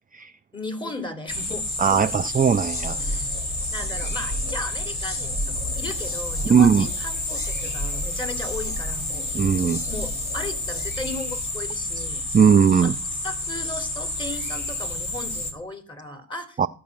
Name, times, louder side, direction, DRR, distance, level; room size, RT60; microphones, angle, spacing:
voice 1, 0.5-2.1 3.0-3.4 3.7-9.3 9.6-12.2 12.8-12.9 13.2-16.7, left 2 dB, 10° left, 3.2 m, -36 dB
sound 1, 1.3-15.5, left 2 dB, 50° left, 3.9 m, -30 dB
voice 2, 1.8-3.0 6.5-6.9 9.3-9.8 12.3-12.9 16.6-16.7, right 6 dB, 20° right, 0.6 m, -18 dB
sound 2, 2.3-11.4, equal, 35° left, 2.5 m, -34 dB
13.5 x 4.8 x 8.5 m
hypercardioid pair, 55°, 40 cm